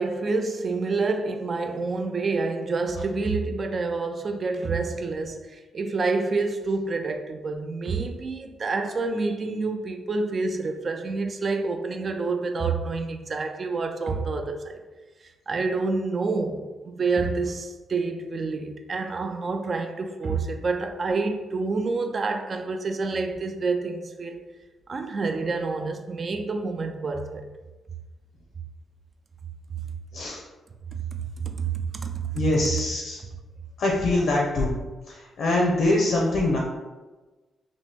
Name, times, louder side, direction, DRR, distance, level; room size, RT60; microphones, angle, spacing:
voice 1, 0.0-14.8 15.5-24.5 24.9-27.5 31.1-32.4, right 3 dB, 50° right, 0.4 m, -28 dB
voice 2, 32.3-33.2 33.8-34.8 35.1-36.6, left 2 dB, 75° left, 0.6 m, -23 dB
2.9 x 2.1 x 3.4 m
supercardioid pair, 55°, 0 cm